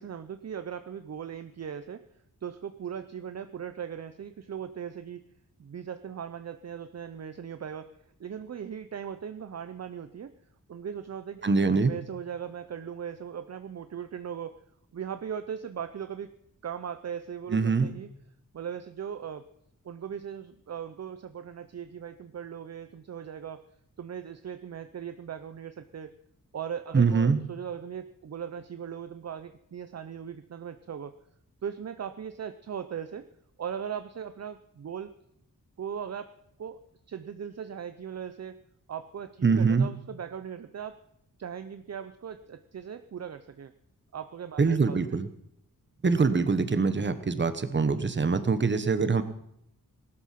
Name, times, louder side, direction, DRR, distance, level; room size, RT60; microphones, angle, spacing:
voice 1, 0.0-2.0 2.4-5.2 5.6-7.9 8.2-10.3 10.7-11.5 11.9-14.6 14.9-16.3 16.6-18.1 18.5-19.5 19.8-23.6 24.0-26.1 26.5-31.1 31.6-33.2 33.6-35.1 35.8-36.3 36.6-36.8 37.1-38.6 38.9-41.0 41.4-43.7 44.1-45.0, right 8 dB, 50° right, 10 dB, 0.7 m, -38 dB
voice 2, 11.4-11.9 17.5-17.9 26.9-27.4 39.4-39.9 44.6-45.3 46.0-49.2, right 4 dB, 35° right, 11 dB, 1.2 m, -24 dB
19.0 x 12.5 x 5.9 m, 0.74 s
wide cardioid pair, 160°, 34 cm